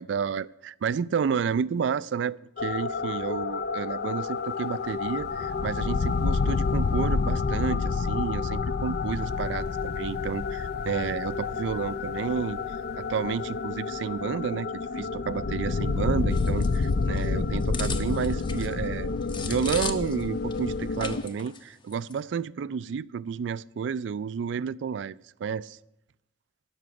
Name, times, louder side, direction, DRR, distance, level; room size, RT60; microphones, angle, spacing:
voice 1, 0.0-12.6 13.0-19.1 19.4-25.8, right 6 dB, 70° right, 0.3 m, -31 dB
sound 1, 2.6-21.2, left 4 dB, 55° left, 0.4 m, -29 dB
sound 2, 16.3-20.2 20.5-20.6 21.0-21.6 21.9-22.1, left 4 dB, 25° left, 0.7 m, -37 dB
12.5 x 6.1 x 8.3 m
head